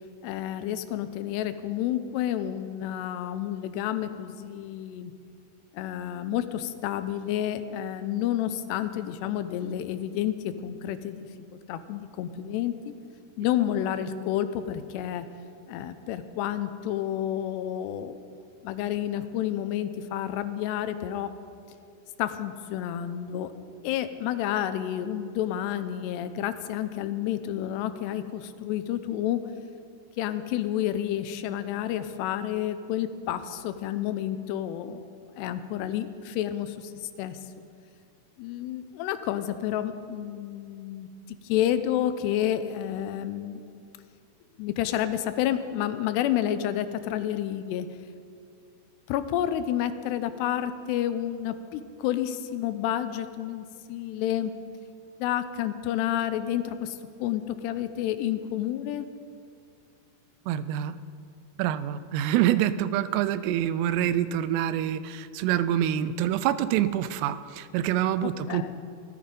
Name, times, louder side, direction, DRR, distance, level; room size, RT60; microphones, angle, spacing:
voice 1, 0.2-5.1 5.7-12.9 13.4-15.3 15.7-18.2 18.6-21.3 22.2-23.5 23.8-29.4 30.2-35.1 35.4-37.6 38.4-43.6 44.6-47.9 49.1-54.5 55.2-59.1 68.2-68.7, left 11 dB, 85° left, 11 dB, 2.8 m, -30 dB
voice 2, 60.5-61.0 61.6-68.7, right 11 dB, 85° right, 14 dB, 2.7 m, -26 dB
17.5 x 13.5 x 5.2 m, 2.4 s
omnidirectional pair, 4.8 m